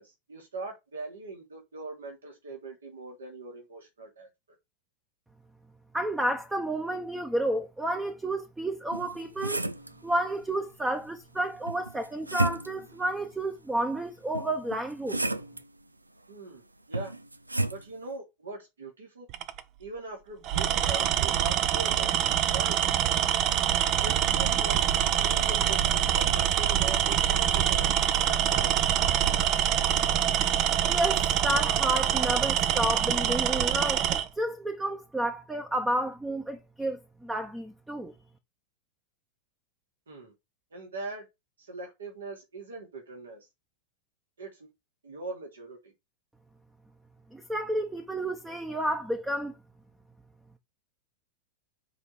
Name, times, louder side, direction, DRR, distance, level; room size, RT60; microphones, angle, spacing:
voice 1, 0.0-4.3 16.3-16.6 16.9-17.1 17.7-19.3 19.8-22.1 22.5-22.8 24.0-27.9 28.3-28.8 40.1-40.3 40.7-41.3 41.6-43.5 44.4-44.7 45.0-45.9, right 3 dB, 70° right, 2.9 m, -41 dB
voice 2, 5.9-9.6 10.0-15.2 30.9-38.1 47.3-49.5, right 1 dB, 5° right, 1.0 m, -31 dB
sound 1, 8.9-9.9 11.7-12.9 14.3-15.6 16.9-17.8, right 2 dB, 85° right, 0.5 m, -32 dB
Tools, 19.3-19.6 20.4-34.3, right 10 dB, 40° right, 0.8 m, -25 dB
8.4 x 4.9 x 4.9 m
figure-of-eight pair, 90°, 0 cm